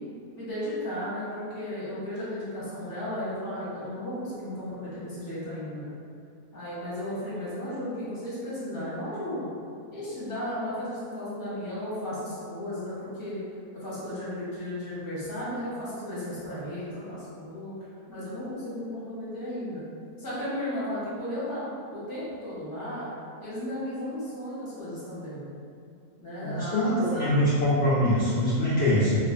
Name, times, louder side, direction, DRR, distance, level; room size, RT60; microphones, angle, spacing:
voice 1, 0.4-5.9 6.5-9.5 9.9-13.4 13.8-17.8 18.1-19.8 20.2-21.6 21.9-23.1 23.4-25.4 26.2-27.5, left 1 dB, 20° left, -11 dB, 0.7 m, -34 dB
voice 2, 26.4-29.2, left 1 dB, 70° left, -10 dB, 0.6 m, -23 dB
2.6 x 2.4 x 2.5 m, 2.3 s
omnidirectional pair, 1.7 m